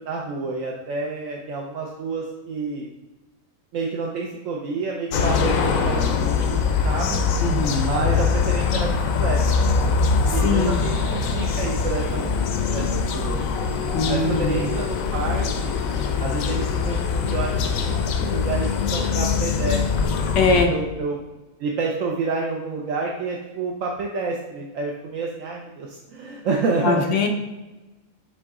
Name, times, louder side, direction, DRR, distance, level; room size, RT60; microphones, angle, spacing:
voice 1, 0.0-2.9 3.7-7.2 7.8-9.4 10.3-12.3 12.7-13.4 14.1-15.8 16.2-20.2 20.5-21.2 21.6-27.1, right 4 dB, 75° right, -1 dB, 1.1 m, -29 dB
sound 1, 5.1-20.7, left 5 dB, 85° left, 1.1 m, -23 dB
voice 2, 7.4-7.9 10.3-10.8 13.9-14.7 20.3-20.7 26.8-27.3, left 4 dB, 65° left, 3 dB, 1.1 m, -22 dB
6.9 x 3.7 x 3.6 m, 1.1 s
omnidirectional pair, 1.4 m